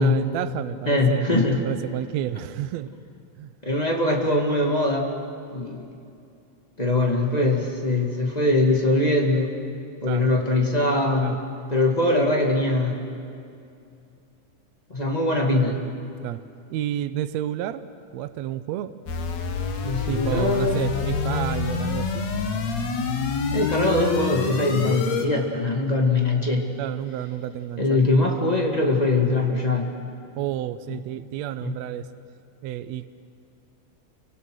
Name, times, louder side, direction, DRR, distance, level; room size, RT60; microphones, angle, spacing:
voice 1, 0.0-2.9 3.4-3.5 10.1-10.3 11.2-11.4 16.2-16.4 16.7-17.8 18.1-18.9 20.1-22.3 26.8-28.0 30.4-32.1 32.6-33.1, right 12 dB, 75° right, 12 dB, 1.7 m, -30 dB
voice 2, 0.8-1.6 3.6-5.1 5.5-5.9 6.8-9.5 10.0-11.3 11.7-13.0 14.9-15.8 19.8-20.8 23.5-26.7 27.8-29.9 31.6-31.7, left 2 dB, 15° left, 1 dB, 1.6 m, -22 dB
sound 1, 19.1-25.3, left 5 dB, 60° left, 2.7 m, -26 dB
29.0 x 24.5 x 6.4 m, 2.5 s
omnidirectional pair, 3.7 m